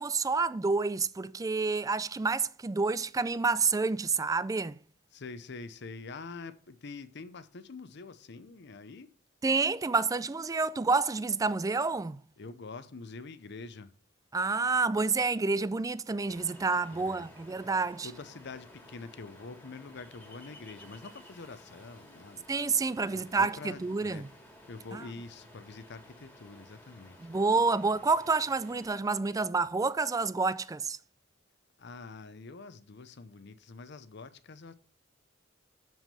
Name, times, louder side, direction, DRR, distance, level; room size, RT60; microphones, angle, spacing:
voice 1, 0.0-4.8 9.4-12.2 14.3-18.1 22.5-24.3 24.9-25.0 27.2-31.0, right 4 dB, 20° right, 0.3 m, -29 dB
voice 2, 5.1-9.1 12.4-13.9 16.9-17.3 18.0-22.4 23.1-24.3 24.7-27.2 31.8-34.7, left 4 dB, 60° left, 0.7 m, -45 dB
Ocean, 16.3-28.9, left 1 dB, 10° left, 2.1 m, -54 dB
7.3 x 6.1 x 6.6 m
head